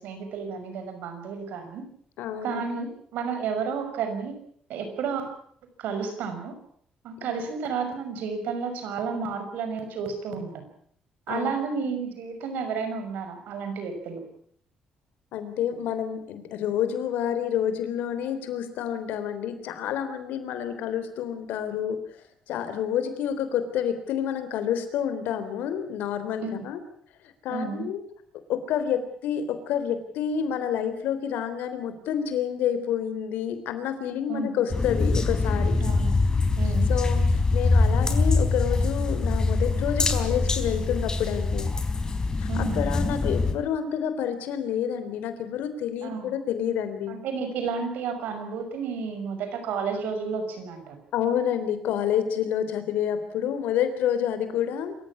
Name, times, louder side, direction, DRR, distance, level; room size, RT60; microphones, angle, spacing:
voice 1, 0.0-1.8 2.4-4.3 4.7-5.2 5.8-6.5 7.0-10.7 11.3-14.2 26.4-26.6 27.5-27.9 34.3-34.6 35.8-36.2 36.6-36.9 42.5-42.8 46.0-46.3 47.1-51.0, right 5 dB, 85° right, 7 dB, 6.1 m, -31 dB
voice 2, 2.2-2.6 7.2-7.4 11.3-11.5 15.3-22.0 22.5-26.8 27.4-28.0 28.5-35.8 36.9-41.8 42.4-47.2 51.1-54.9, left 9 dB, 85° left, 10 dB, 3.6 m, -28 dB
sound 1, 34.7-43.5, left 3 dB, 25° left, 4.2 m, -24 dB
26.5 x 15.0 x 8.6 m, 0.65 s
cardioid pair, 95°, 3 cm